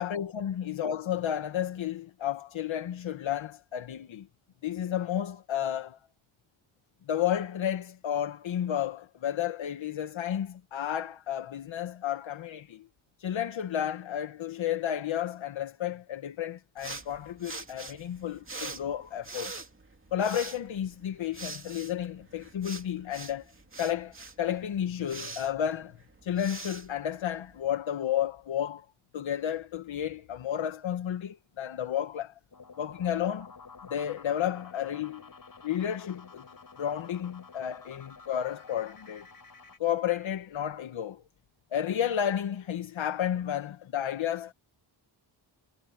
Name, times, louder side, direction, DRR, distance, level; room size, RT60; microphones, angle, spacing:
voice 1, 0.0-4.3 4.6-6.0 7.1-12.9 13.2-19.5 20.1-23.4 23.8-26.0 26.2-28.8 29.1-32.3 32.8-33.5 33.9-35.3 35.6-39.3 39.8-41.2 41.7-44.5, left 10 dB, 75° left, 1.5 m, -32 dB
sound 1, 16.8-27.7, right 3 dB, 25° right, 2.7 m, -44 dB
sound 2, 32.5-39.8, left 4 dB, 45° left, 6.6 m, -51 dB
cardioid pair, 80°, 47 cm